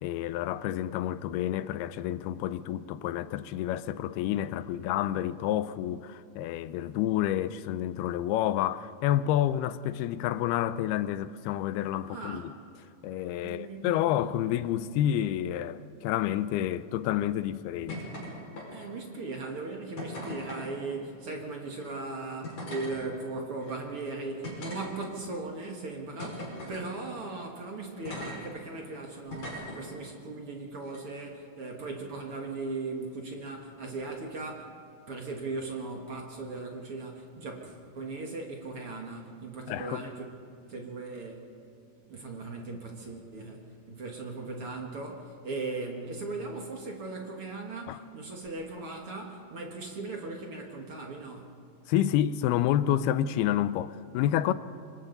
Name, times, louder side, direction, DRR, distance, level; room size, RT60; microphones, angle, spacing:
voice 1, 0.0-12.5 13.0-18.0 39.7-40.0 47.9-48.0 51.9-54.5, left 12 dB, 90° left, 2.6 m, -29 dB
voice 2, 12.0-12.5 13.4-14.3 18.7-34.7 35.1-40.3 40.6-41.4 42.1-51.6, right 3 dB, 50° right, 1.9 m, -38 dB
sound 1, 17.9-18.3 18.6-19.0 20.0-20.7 21.7-21.9 22.4-22.9 23.6-23.7 24.4-25.3 26.2-26.8 28.1-28.4 29.3-29.8 30.9-31.0, left 1 dB, 45° left, 6.4 m, -39 dB
26.5 x 24.5 x 4.0 m
omnidirectional pair, 4.4 m